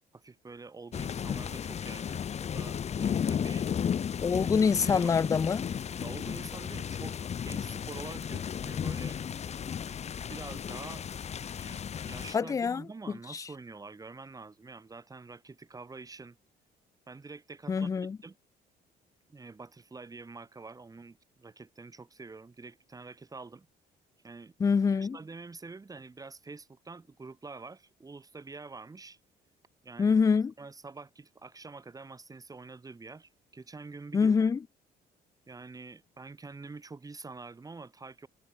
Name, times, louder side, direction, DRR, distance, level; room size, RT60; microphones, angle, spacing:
voice 1, 0.1-3.7 4.3-4.5 4.8-5.3 6.0-9.2 10.3-11.0 11.5-16.4 17.1-17.9 18.2-18.4 19.3-23.7 24.2-24.5 25.1-29.2 29.8-30.2 30.6-34.3 35.5-38.3, right 3 dB, 20° right, 6.9 m, -46 dB
sound 1, 0.9-12.3, left 8 dB, 40° left, 1.4 m, -34 dB
voice 2, 4.2-5.7 12.3-12.8 13.3-13.4 17.7-18.2 24.6-25.2 30.0-30.5 34.1-34.6, left 5 dB, 20° left, 0.4 m, -25 dB
cardioid pair, 110°, 17 cm